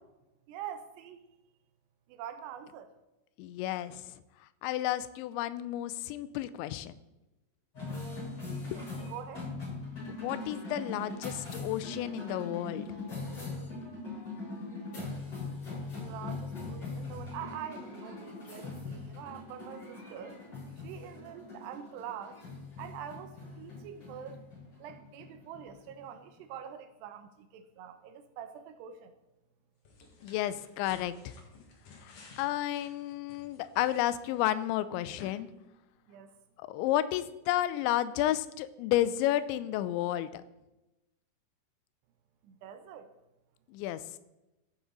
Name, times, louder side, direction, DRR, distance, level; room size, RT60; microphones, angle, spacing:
voice 1, 0.5-1.2 2.1-2.9 8.6-8.8 9.1-9.5 15.9-20.4 20.8-22.4 22.8-24.4 24.8-29.1 36.1-36.3 42.4-43.1, right 9 dB, 80° right, 8 dB, 2.6 m, -45 dB
voice 2, 3.4-4.2 4.6-7.0 8.7-8.8 10.1-12.9 30.2-31.4 32.0-35.5 36.6-40.4 43.7-44.0, left 13 dB, 85° left, 14 dB, 2.9 m, -32 dB
sound 1, 7.7-26.4, left 3 dB, 25° left, 4.4 m, -41 dB
sound 2, 29.8-34.8 35.1-35.3, left 3 dB, 55° left, 2.0 m, -55 dB
15.0 x 6.2 x 3.9 m, 0.98 s
omnidirectional pair, 5.2 m